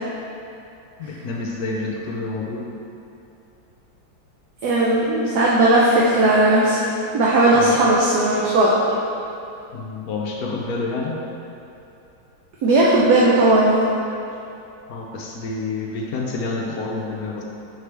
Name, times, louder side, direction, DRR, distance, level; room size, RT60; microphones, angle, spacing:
voice 1, 1.0-2.6 7.5-7.9 9.7-11.2 14.9-17.4, left 3 dB, 70° left, -1 dB, 0.9 m, -28 dB
voice 2, 4.6-6.8 7.1-8.8 12.6-13.8, right 2 dB, 65° right, -5 dB, 1.1 m, -16 dB
6.7 x 4.8 x 3.3 m, 2.8 s
omnidirectional pair, 2.1 m